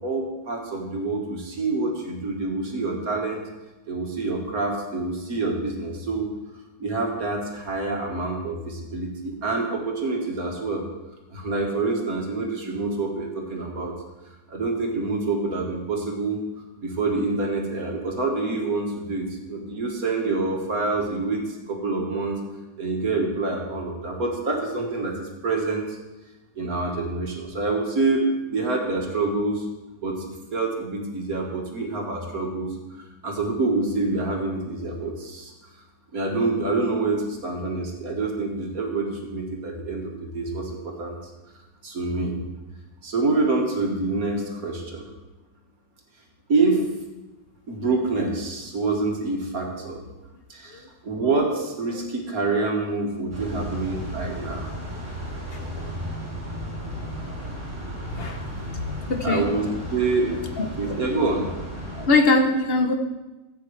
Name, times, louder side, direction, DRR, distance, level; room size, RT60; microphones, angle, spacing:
voice 1, 0.0-3.5 3.9-6.3 6.8-10.8 11.3-13.9 14.5-16.4 16.8-22.4 22.8-25.9 26.6-29.7 30.0-30.2 30.5-35.5 36.1-41.2 41.8-42.4 43.0-45.1 46.5-46.8 47.7-50.0 50.5-54.7 55.7-56.0 59.2-59.7 59.9-60.4 60.8-61.5, right 3 dB, 50° right, 1 dB, 1.8 m, -26 dB
sound 1, 53.3-62.1, equal, 15° right, 3.3 m, -34 dB
voice 2, 58.0-58.4 58.7-59.4 60.6-61.0 62.0-62.9, left 3 dB, 50° left, 4 dB, 0.7 m, -23 dB
15.0 x 8.4 x 3.3 m, 1.1 s
omnidirectional pair, 2.0 m